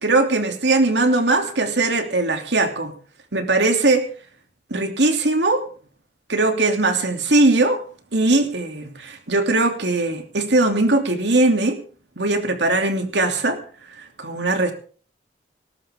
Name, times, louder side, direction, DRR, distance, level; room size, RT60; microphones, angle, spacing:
voice 1, 0.0-2.9 3.3-4.1 4.7-5.6 6.3-7.8 8.1-11.8 12.2-13.6 13.9-14.7, right 2 dB, 80° right, 5 dB, 2.9 m, -20 dB
18.5 x 14.0 x 3.7 m, 0.41 s
head